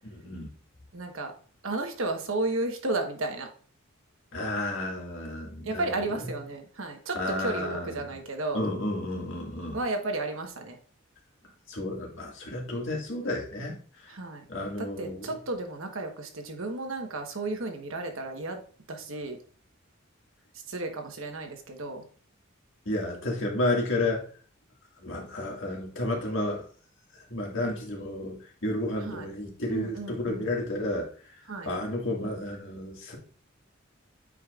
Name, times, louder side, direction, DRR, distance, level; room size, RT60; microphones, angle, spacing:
voice 1, 0.1-0.5 4.3-5.9 6.2-6.3 7.1-8.0 8.5-9.8 11.7-13.7 14.5-15.3 22.9-24.2 25.0-26.6 27.3-28.4 28.6-31.1 31.7-33.2, left 1 dB, 65° left, -1 dB, 2.0 m, -31 dB
voice 2, 0.9-1.3 1.6-3.5 5.6-8.6 9.7-10.8 14.1-14.4 14.8-18.6 18.9-19.4 20.7-22.0 29.0-29.3 29.7-30.5 31.5-31.7, right 2 dB, 70° right, 4 dB, 1.2 m, -33 dB
8.5 x 5.1 x 2.4 m, 0.43 s
head